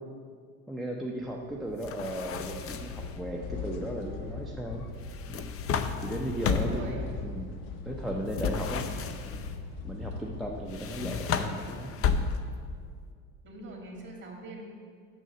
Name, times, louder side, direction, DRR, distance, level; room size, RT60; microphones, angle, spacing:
voice 1, 0.7-4.8 5.3-5.5 6.0-7.0 7.2-7.5 7.8-8.8 9.2-9.5 9.8-12.3, right 1 dB, ahead, -1 dB, 0.7 m, -36 dB
sound 1, 1.2-12.2, left 4 dB, 65° left, 0.9 m, -41 dB
sound 2, 1.8-3.1 5.1-6.9 8.3-9.5 10.7-12.7, left 6 dB, 35° left, 0.6 m, -32 dB
voice 2, 6.5-7.1 8.5-8.8 13.4-14.6, right 2 dB, 25° right, 1 dB, 2.1 m, -43 dB
6.8 x 6.3 x 6.6 m, 2.1 s
hypercardioid pair, 90°, 41 cm